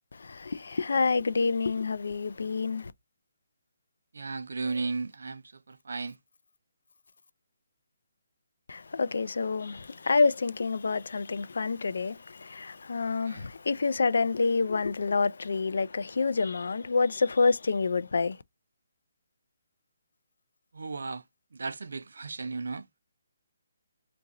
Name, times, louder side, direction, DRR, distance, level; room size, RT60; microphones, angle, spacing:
voice 1, 0.1-2.9 8.7-18.4, left 4 dB, 60° left, 0.3 m, -28 dB
voice 2, 4.1-6.2 13.2-13.5 20.7-22.9, right 4 dB, 70° right, 0.5 m, -35 dB
2.9 x 2.6 x 3.6 m
hypercardioid pair, 180°, 0 cm